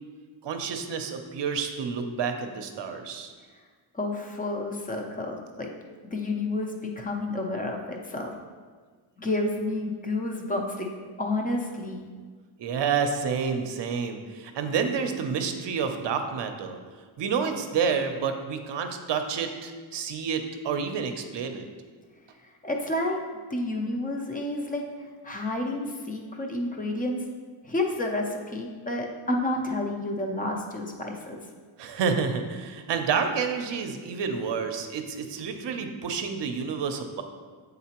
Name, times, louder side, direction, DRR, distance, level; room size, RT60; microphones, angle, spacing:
voice 1, 0.4-3.3 12.6-16.8 17.2-21.6 31.8-37.2, right 6 dB, 60° right, 6 dB, 0.6 m, -29 dB
voice 2, 3.9-5.7 6.1-8.3 9.2-10.9 11.2-12.1 22.6-23.2 23.5-27.2 27.6-31.4, left 2 dB, 15° left, 2 dB, 0.5 m, -30 dB
8.1 x 3.9 x 2.9 m, 1.5 s
wide cardioid pair, 165°, 49 cm